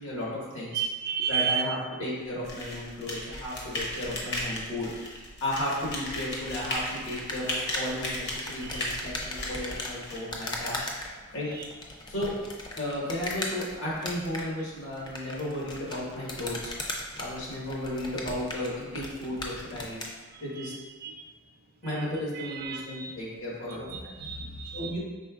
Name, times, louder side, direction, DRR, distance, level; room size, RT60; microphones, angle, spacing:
voice 1, 0.0-0.8 1.3-4.9 5.4-10.9 11.3-11.5 12.1-12.3 12.7-16.7 17.2-20.0 20.4-20.7 21.8-23.9 24.7-25.0, left 1 dB, 80° left, -5 dB, 1.5 m, -34 dB
voice 2, 0.7-1.6 8.6-9.3 11.5-11.7 20.3-21.3 21.8-22.1 22.3-23.2 23.7-25.0, right 7 dB, 45° right, 2 dB, 0.4 m, -34 dB
sound 1, 2.4-10.2, left 1 dB, 55° left, 0.9 m, -36 dB
sound 2, 6.1-20.2, left 1 dB, 20° left, 0.4 m, -38 dB
5.1 x 3.7 x 2.4 m, 1.3 s
head